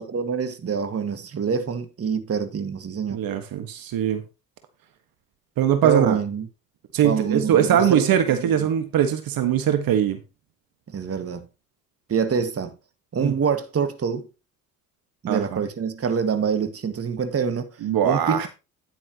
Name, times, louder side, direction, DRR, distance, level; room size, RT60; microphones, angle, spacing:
voice 1, 0.0-3.2 5.8-6.5 7.0-8.5 10.9-11.5 12.1-12.7 13.1-14.3 15.2-17.7 18.0-18.5, right 6 dB, 40° right, 1.9 m, -26 dB
voice 2, 3.1-4.2 5.6-6.2 6.9-10.2 13.2-13.3 15.3-15.6 17.8-18.5, right 9 dB, 65° right, 1.6 m, -21 dB
10.5 x 8.9 x 2.9 m
supercardioid pair, 70°, 38 cm